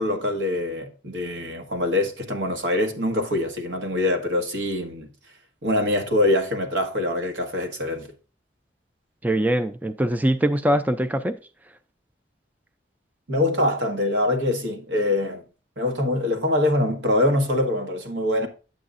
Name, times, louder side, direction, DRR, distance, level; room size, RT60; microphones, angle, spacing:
voice 1, 0.0-5.1 5.6-8.1 13.3-15.4 15.8-18.5, left 1 dB, 80° right, 1.5 m, -24 dB
voice 2, 9.2-11.4, right 1 dB, 10° right, 0.3 m, -22 dB
9.0 x 8.1 x 2.5 m
head